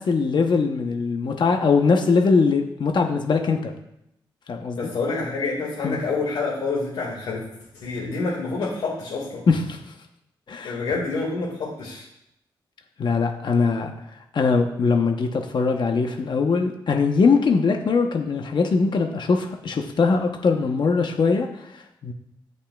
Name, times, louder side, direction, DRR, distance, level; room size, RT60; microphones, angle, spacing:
voice 1, 0.0-3.7 4.5-4.9 5.8-6.0 9.5-9.8 10.5-10.8 13.0-13.9 14.3-22.1, left 4 dB, 60° left, 4 dB, 0.9 m, -21 dB
voice 2, 4.8-7.5 7.7-9.4 10.6-12.0, left 3 dB, 90° left, -4 dB, 2.0 m, -27 dB
16.5 x 5.5 x 2.4 m, 0.83 s
cardioid pair, 55°, 9 cm